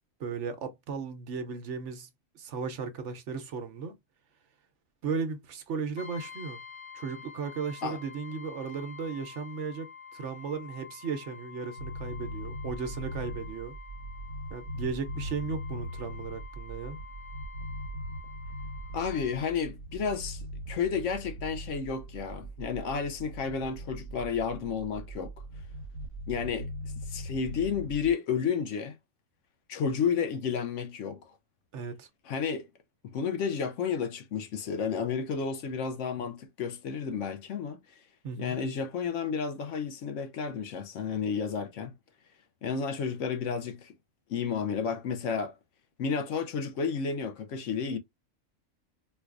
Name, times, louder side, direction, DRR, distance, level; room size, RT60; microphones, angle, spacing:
voice 1, 0.2-2.1 2.3-4.0 5.0-6.6 6.9-13.8 14.5-17.0 31.7-32.1 38.2-38.6, right 5 dB, 65° right, 1.0 m, -36 dB
Brass instrument, 6.0-19.6, left 6 dB, 35° left, 0.6 m, -48 dB
sound 1, 11.8-28.1, equal, 55° left, 1.5 m, -40 dB
voice 2, 18.9-25.3 26.3-26.7 27.1-29.0 29.7-31.2 32.3-32.7 33.0-37.8 38.4-41.9 42.6-43.9 44.3-45.5 46.0-48.0, left 6 dB, 70° left, 0.9 m, -31 dB
4.4 x 2.3 x 2.4 m
omnidirectional pair, 1.4 m